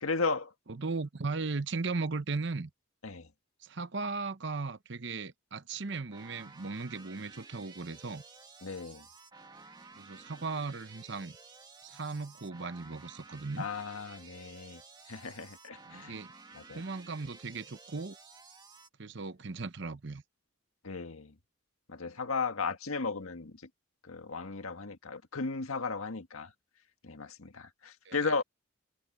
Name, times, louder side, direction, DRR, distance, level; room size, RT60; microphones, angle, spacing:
voice 1, 0.0-0.5 3.0-3.3 8.6-9.1 13.6-14.8 15.1-16.2 16.5-16.8 20.8-21.3 21.9-23.6 24.0-26.5 27.0-28.4, left 4 dB, 90° left, 1.7 m, -35 dB
voice 2, 0.7-2.7 3.6-8.2 9.9-11.4 11.8-13.7 15.9-16.3 16.7-18.2 19.0-20.2 28.0-28.4, right 3 dB, 55° right, 0.8 m, -37 dB
sound 1, 6.1-18.9, right 4 dB, 20° right, 2.1 m, -53 dB
head